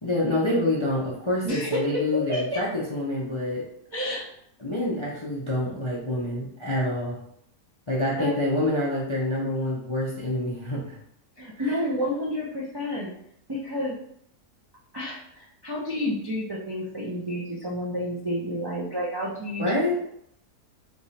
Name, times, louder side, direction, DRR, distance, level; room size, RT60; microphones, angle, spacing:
voice 1, 0.0-3.6 4.6-7.2 7.9-11.0 19.6-20.0, left 1 dB, 35° left, -5 dB, 0.5 m, -27 dB
voice 2, 1.4-1.8 2.1-2.6 3.9-4.3 8.2-8.3 11.4-13.1 13.5-14.0 14.9-19.9, equal, 40° right, -5 dB, 0.3 m, -30 dB
3.4 x 3.0 x 4.2 m, 0.73 s
omnidirectional pair, 1.6 m